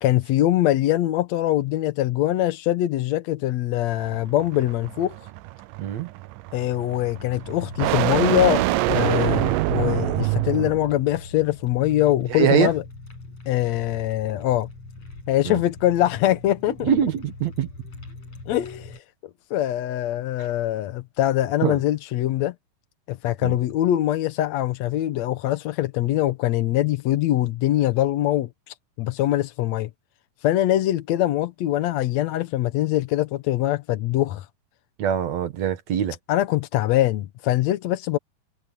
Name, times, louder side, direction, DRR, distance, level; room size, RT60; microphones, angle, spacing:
voice 1, 0.0-5.2 6.5-12.8 13.5-14.7 15.3-16.9 18.5-19.0 19.5-22.5 23.1-29.9 30.4-34.5 36.3-38.2, left 14 dB, 70° left, 1.8 m, -23 dB
sound 1, 3.9-11.0, right 17 dB, 85° right, 2.3 m, -25 dB
voice 2, 5.8-6.1 12.3-12.7 15.5-15.6 16.8-17.7 21.6-21.8 23.4-23.6 35.0-36.2, right 9 dB, 60° right, 2.4 m, -23 dB
sound 2, 7.1-19.0, left 3 dB, 50° left, 8.6 m, -41 dB
omnidirectional pair, 3.9 m